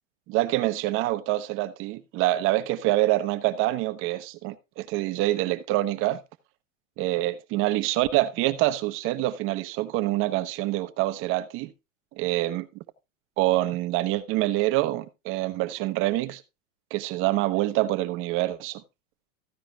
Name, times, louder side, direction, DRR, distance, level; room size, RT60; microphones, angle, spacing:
voice 1, 0.3-6.2 7.0-11.7 12.2-12.7 13.4-16.4 16.9-18.8, right 16 dB, 35° right, 1.1 m, -26 dB
15.0 x 10.0 x 2.3 m
supercardioid pair, 145°, 38 cm